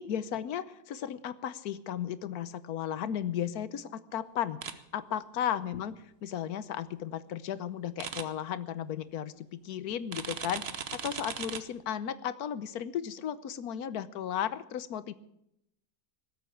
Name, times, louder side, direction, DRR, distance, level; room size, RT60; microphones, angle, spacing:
voice 1, 0.0-4.6 4.9-5.9 6.2-15.1, left 9 dB, 70° left, 15 dB, 1.3 m, -35 dB
sound 1, 4.6-4.7 8.0-8.2 10.1-11.6, right 7 dB, 45° right, 1.0 m, -37 dB
18.0 x 8.2 x 8.6 m, 0.81 s
omnidirectional pair, 1.7 m